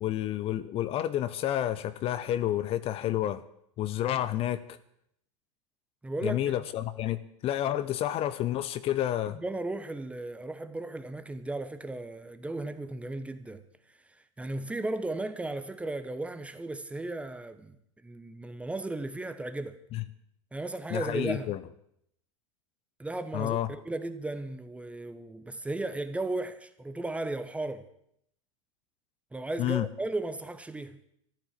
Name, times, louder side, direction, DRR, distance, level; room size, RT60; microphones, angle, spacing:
voice 1, 0.0-3.4 3.8-4.8 6.2-9.4 19.9-20.0 20.9-21.6 23.3-23.7 29.6-29.9, left 12 dB, 35° left, 0.9 m, -30 dB
voice 2, 6.0-6.4 9.4-13.6 14.4-17.8 18.0-19.8 20.5-21.6 23.0-27.9 29.3-31.0, right 2 dB, 5° right, 1.0 m, -35 dB
13.5 x 12.0 x 7.6 m
hypercardioid pair, 110°, 17 cm